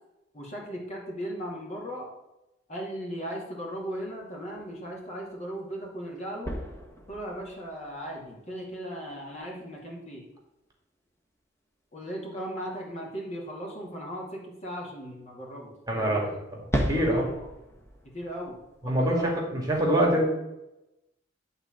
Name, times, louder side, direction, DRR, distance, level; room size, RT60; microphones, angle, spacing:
voice 1, 0.3-2.1 2.7-6.6 7.1-10.2 11.9-16.4 16.8-17.4 18.1-18.6 18.8-19.3, equal, 35° left, -2 dB, 2.5 m, -37 dB
sound 1, 3.6-8.8 9.0-9.4 16.5-19.4, equal, 15° left, 1.4 m, -36 dB
voice 2, 15.9-17.2 18.8-19.2 19.5-20.3, right 1 dB, 20° right, -1 dB, 2.1 m, -25 dB
11.5 x 4.0 x 7.7 m, 0.93 s
head